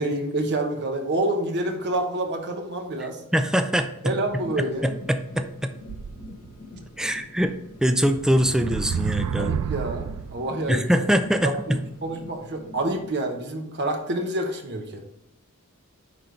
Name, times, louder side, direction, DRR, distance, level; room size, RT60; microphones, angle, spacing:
voice 1, 0.0-3.2 4.0-4.9 9.4-11.0 11.4-15.0, right 1 dB, 50° right, 4 dB, 1.1 m, -28 dB
voice 2, 3.3-4.1 4.6-5.7 7.0-7.5 7.8-9.5 10.7-11.8, equal, 5° right, 8 dB, 0.4 m, -23 dB
sound 1, 4.1-13.1, left 2 dB, 40° left, 1.3 m, -44 dB
sound 2, 5.9-6.8 7.4-7.5 8.1-10.6, right 7 dB, 85° right, 0.3 m, -30 dB
10.0 x 3.9 x 3.4 m, 0.85 s
head